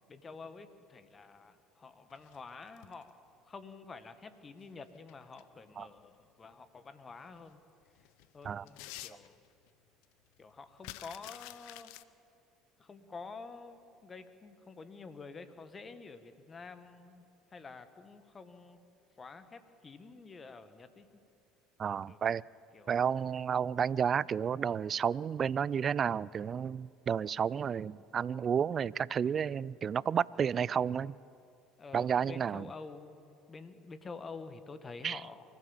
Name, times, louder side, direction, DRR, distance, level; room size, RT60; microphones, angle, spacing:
voice 1, 0.1-7.6 8.3-9.4 10.4-11.9 12.8-17.3 17.5-18.8 19.2-21.2 22.1-22.2 22.7-22.9 31.8-35.4, left 4 dB, 30° left, 10 dB, 1.6 m, -49 dB
sound 1, 2.1-3.1 4.7-5.4 6.0-6.1 7.3-7.4 7.8-9.7 10.0-10.1 10.3-12.0, left 16 dB, 70° left, 0.7 m, -49 dB
voice 2, 21.8-22.4 22.9-31.2 31.9-32.7 35.0-35.2, right 7 dB, 40° right, 23 dB, 0.4 m, -31 dB
24.5 x 15.0 x 7.3 m, 2.5 s
hypercardioid pair, 70°, 0 cm